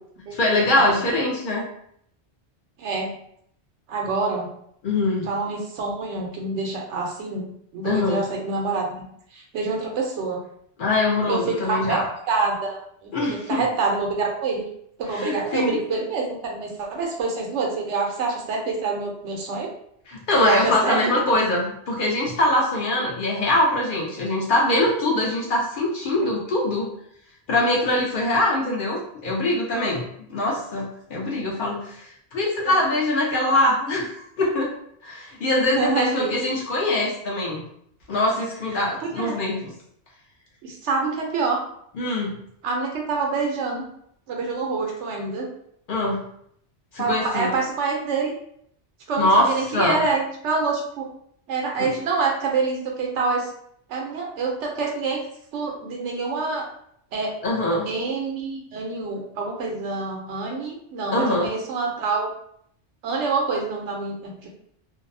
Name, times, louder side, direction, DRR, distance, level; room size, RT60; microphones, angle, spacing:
voice 1, 0.3-1.6 4.8-5.3 7.8-8.2 10.8-12.1 13.1-13.6 15.1-15.8 20.1-26.9 27.5-34.7 35.0-37.6 38.1-39.6 42.0-42.3 45.9-46.2 46.9-47.5 49.2-50.0 51.8-51.9 57.4-57.9 61.1-61.5, left 1 dB, 60° left, -2 dB, 0.6 m, -23 dB
voice 2, 2.8-3.1 3.9-4.5 5.3-8.9 9.3-10.4 11.3-12.0 12.3-14.7 15.0-19.7 20.4-21.0 32.6-32.8 35.6-36.4 39.2-39.4 40.6-41.6 42.6-43.9 44.3-45.5 47.0-48.3 49.1-51.1 51.5-53.5 53.9-55.2 55.5-56.7 57.1-57.3 57.9-62.3 63.0-64.5, right 4 dB, 85° right, 1 dB, 0.9 m, -26 dB
2.6 x 2.0 x 2.5 m, 0.69 s
omnidirectional pair, 1.2 m